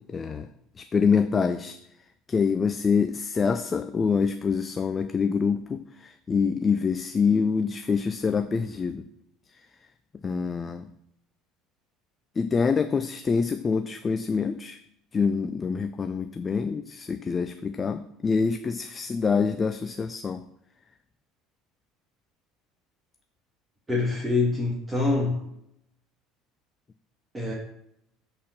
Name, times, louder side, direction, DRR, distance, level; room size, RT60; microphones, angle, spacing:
voice 1, 0.1-0.5 0.8-1.8 2.3-9.0 10.2-10.9 12.4-14.8 15.1-20.4, left 5 dB, 30° left, 9 dB, 0.5 m, -26 dB
voice 2, 23.9-25.4 27.3-27.5, left 3 dB, 15° right, -5 dB, 2.4 m, -25 dB
7.7 x 4.3 x 6.7 m, 0.77 s
figure-of-eight pair, 65°, 0 cm